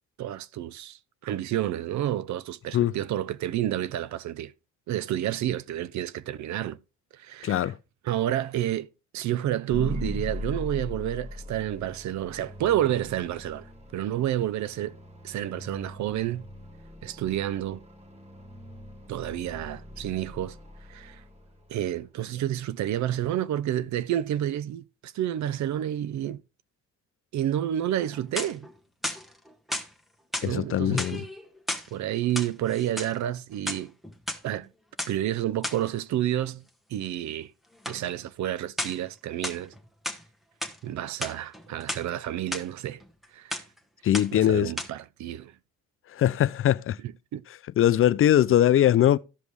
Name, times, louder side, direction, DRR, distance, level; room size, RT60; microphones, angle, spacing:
voice 1, 0.2-1.0 1.2-4.5 4.9-6.8 7.1-7.7 8.0-8.9 9.1-13.7 13.9-15.0 15.2-16.5 17.0-17.8 19.1-20.6 20.9-21.2 21.7-26.4 27.3-28.7 30.4-31.3 31.9-33.9 34.4-34.7 35.1-36.6 36.9-37.5 37.9-39.7 40.8-43.0 43.3-43.5 44.3-45.5 47.3-47.4, right 12 dB, 70° right, 0.5 m, -29 dB
voice 2, 7.4-7.7 30.4-31.2 44.0-44.7 46.1-47.0 47.8-49.2, left 11 dB, 45° left, 0.4 m, -21 dB
sound 1, 9.7-21.9, left 1 dB, 20° right, 1.3 m, -40 dB
sound 2, 28.1-28.7 29.0-29.9 30.3-30.5 30.9-31.9 32.2-33.1 33.5-34.4 35.0-35.1 35.6-35.9 37.8-38.0 38.8-39.1 39.4-40.2 40.6-40.8 41.1-42.0 42.5-42.6 43.0-43.3 43.5-43.8 44.1-44.5 44.8-44.9, left 1 dB, ahead, 1.1 m, -33 dB
14.0 x 5.2 x 3.2 m
cardioid pair, 90°, 30 cm